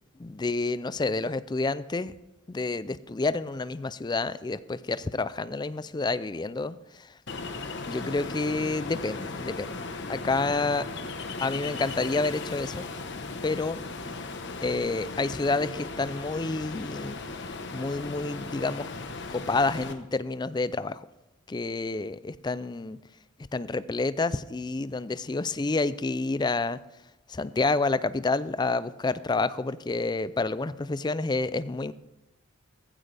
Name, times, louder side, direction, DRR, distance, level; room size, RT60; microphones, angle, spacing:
voice 1, 0.2-2.1 2.5-7.1 7.9-9.8 10.1-10.9 11.4-12.8 13.4-13.8 14.6-17.2 17.7-18.9 19.3-21.1 21.5-23.0 23.5-26.8 27.3-31.9, left 3 dB, 20° left, 15 dB, 0.4 m, -29 dB
Ocean, 7.3-19.9, left 3 dB, 60° left, 1.1 m, -37 dB
15.5 x 15.0 x 3.4 m, 0.96 s
head